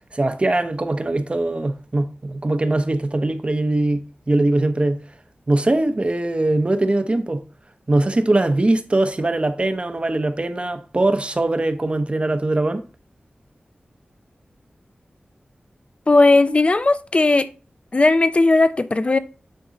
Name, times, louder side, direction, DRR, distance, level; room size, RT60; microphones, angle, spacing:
voice 1, 0.1-5.0 5.5-7.4 7.9-12.8, right 2 dB, 35° right, 0.8 m, -21 dB
voice 2, 16.1-17.5 17.9-19.2, left 2 dB, 35° left, 0.5 m, -16 dB
9.0 x 3.7 x 4.0 m
wide cardioid pair, 75°, 3 cm